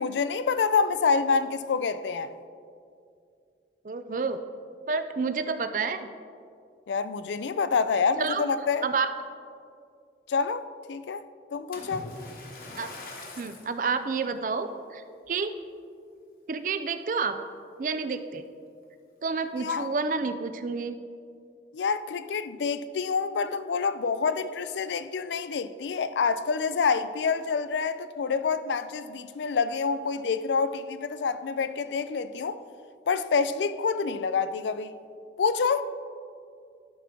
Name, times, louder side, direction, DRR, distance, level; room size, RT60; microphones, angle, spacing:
voice 1, 0.0-2.3 6.9-8.9 10.3-10.6 10.9-11.2 11.5-12.1 19.6-19.9 21.7-32.6 33.1-34.9 35.4-35.8, left 5 dB, 85° left, 0.4 m, -27 dB
voice 2, 3.8-4.4 4.9-6.1 8.2-8.5 8.8-9.1 12.8-12.9 13.4-15.5 16.5-17.4 17.8-18.4 19.2-21.0, right 4 dB, 45° right, 0.4 m, -29 dB
Splash splatter, 11.7-13.8 14.4-14.6 15.2-15.3, left 2 dB, 50° left, 1.2 m, -42 dB
12.0 x 5.9 x 3.7 m
head